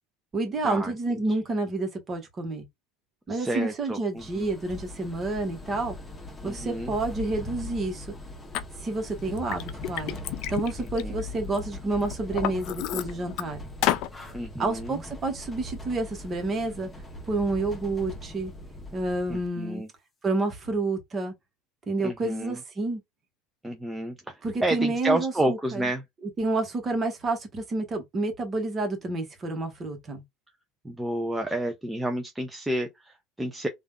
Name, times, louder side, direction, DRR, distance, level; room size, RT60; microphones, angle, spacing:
voice 1, 0.3-2.7 3.3-6.0 6.4-8.1 8.8-10.2 10.5-13.6 14.6-16.9 17.3-18.5 18.9-19.8 20.2-21.3 21.9-23.0 24.4-25.9 26.4-30.2, right 2 dB, 30° right, 1.3 m, -29 dB
voice 2, 3.3-4.5 6.4-6.9 11.0-11.2 14.3-15.0 19.3-19.9 22.0-22.6 23.6-26.0 30.8-33.7, right 1 dB, 10° right, 0.6 m, -30 dB
sound 1, 4.2-19.5, left 1 dB, 15° left, 1.0 m, -41 dB
Liquid, 8.5-8.6 9.2-11.6 12.0-13.4 13.8-14.1, left 13 dB, 60° left, 0.4 m, -30 dB
3.3 x 2.5 x 2.2 m
hypercardioid pair, 75°, 0 cm